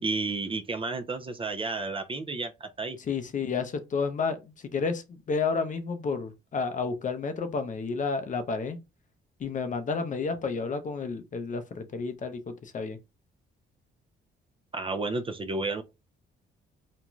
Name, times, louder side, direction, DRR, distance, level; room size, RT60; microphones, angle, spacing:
voice 1, 0.0-3.0 14.7-15.8, right 3 dB, 25° right, 0.4 m, -31 dB
voice 2, 3.1-8.8 9.4-13.0, left 4 dB, 40° left, 0.6 m, -31 dB
2.5 x 2.2 x 3.0 m
cardioid pair, 90°, 20 cm